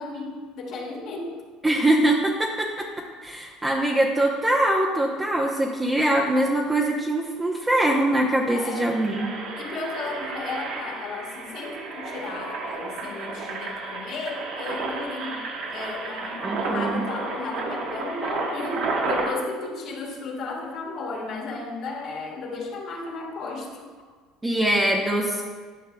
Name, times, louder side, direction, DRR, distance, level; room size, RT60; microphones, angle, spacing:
voice 1, 0.0-1.4 8.5-8.9 9.5-23.8, left 3 dB, 60° left, -1 dB, 1.6 m, -34 dB
voice 2, 1.6-2.9 3.2-9.3 16.4-17.0 24.4-25.4, right 1 dB, 15° right, -2 dB, 0.8 m, -23 dB
Engine, 7.6-7.7 7.9-8.2 8.6-19.3, right 3 dB, 65° right, 1.1 m, -32 dB
11.0 x 5.6 x 2.3 m, 1.5 s
supercardioid pair, 85°, 0 cm